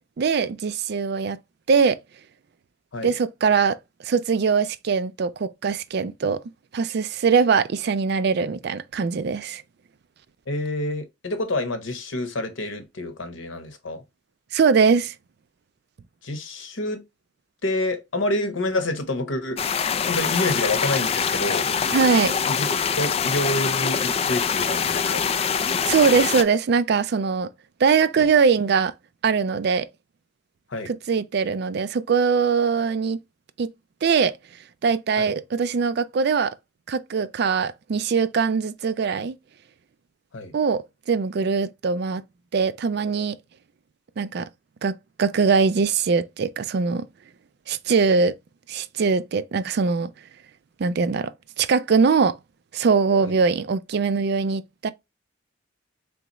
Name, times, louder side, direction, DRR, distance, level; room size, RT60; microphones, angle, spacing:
voice 1, 0.2-1.4 1.7-2.0 3.0-6.4 6.7-9.6 14.5-15.1 21.9-22.3 25.8-27.5 27.8-28.9 29.2-29.9 30.9-33.2 33.6-33.7 34.0-34.3 34.8-36.5 36.9-39.4 40.5-42.2 42.5-43.4 44.2-44.5 44.8-47.1 47.7-48.3 48.7-50.1 50.8-52.4 52.7-54.9, right 5 dB, 55° right, 0.4 m, -22 dB
voice 2, 10.5-14.0 16.2-17.0 17.6-19.6 20.0-21.7 22.5-25.2 28.2-28.3 30.7-30.9 35.2-35.3 40.3-40.5 53.2-53.4, left 1 dB, 80° left, 1.0 m, -28 dB
sound 1, 19.6-26.4, left 6 dB, 30° left, 0.3 m, -24 dB
3.9 x 3.4 x 2.9 m
head